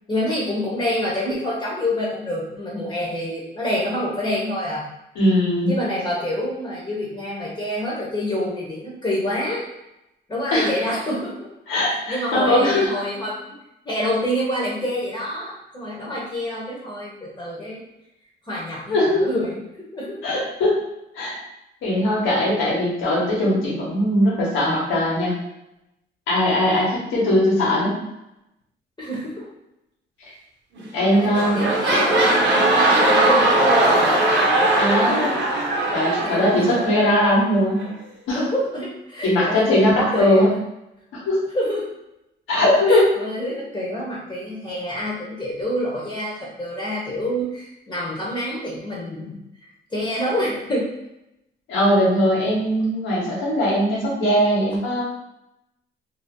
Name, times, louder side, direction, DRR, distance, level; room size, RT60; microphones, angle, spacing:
voice 1, 0.1-4.9 5.7-9.6 10.3-11.5 11.9-13.6 13.8-17.8 18.4-19.5 19.8-20.2 26.7-26.8 29.0-29.5 31.0-34.1 36.2-37.0 38.3-39.8 40.1-40.4 41.5-41.9 42.9-49.4 49.9-50.9, left 1 dB, 20° left, -5 dB, 1.0 m, -27 dB
voice 2, 5.1-5.7 10.5-10.7 11.7-12.9 18.9-19.3 20.2-20.8 21.1-21.3 21.8-25.3 26.3-27.9 30.2-30.3 30.9-31.7 34.8-35.3 35.9-37.9 38.3-38.4 39.2-40.5 41.1-41.4 42.5-43.0 51.7-55.0, left 1 dB, 85° left, -5 dB, 1.3 m, -20 dB
sound 1, 30.8-31.0 31.3-37.1 37.8-37.9, right 1 dB, 65° right, 0.8 m, -19 dB
2.7 x 2.3 x 3.6 m, 0.88 s
cardioid pair, 90°, 20 cm